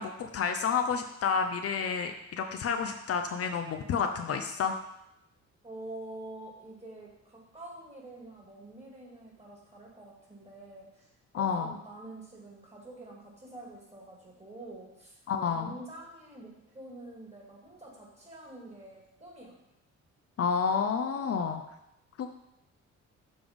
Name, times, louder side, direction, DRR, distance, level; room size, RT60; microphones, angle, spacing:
voice 1, 0.0-4.8 11.3-11.7 15.3-15.7 20.4-21.6 22.2-22.3, left 6 dB, 50° left, 5 dB, 0.5 m, -30 dB
voice 2, 5.6-11.1 11.3-15.2 15.5-19.6 21.1-21.5, right 1 dB, 20° right, -3 dB, 2.4 m, -47 dB
7.0 x 3.4 x 5.2 m, 0.85 s
cardioid pair, 90°, 30 cm